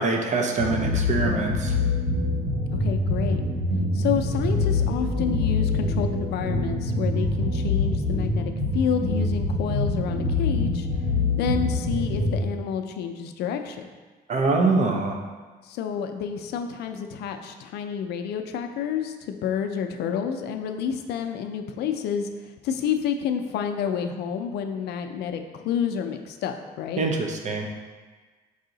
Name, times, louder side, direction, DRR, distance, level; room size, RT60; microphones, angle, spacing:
voice 1, 0.0-1.8 14.3-15.2 27.0-27.7, right 3 dB, 45° right, 2 dB, 0.7 m, -24 dB
sound 1, 0.6-12.4, left 2 dB, 90° right, 1.5 m, -25 dB
voice 2, 2.8-3.4 3.9-10.9 11.4-13.8 15.6-22.3 22.6-27.0, left 8 dB, 75° left, 7 dB, 0.4 m, -29 dB
4.8 x 2.7 x 3.8 m, 1.4 s
cardioid pair, 100°, 17 cm